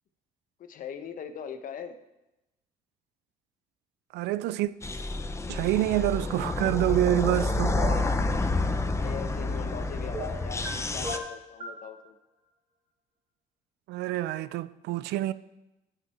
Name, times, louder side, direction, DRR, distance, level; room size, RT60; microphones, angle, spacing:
voice 1, 0.7-2.0 9.0-12.2, left 7 dB, 55° left, 1.1 m, -40 dB
voice 2, 4.1-4.7 5.5-7.8 13.9-15.3, right 14 dB, 80° right, 0.5 m, -27 dB
sound 1, 4.8-11.2, left 2 dB, 15° left, 0.7 m, -29 dB
sound 2, 7.7-8.1 10.1-10.7 11.0-11.8, right 1 dB, 35° right, 3.2 m, -35 dB
13.0 x 6.7 x 4.4 m
cardioid pair, 110°, 17 cm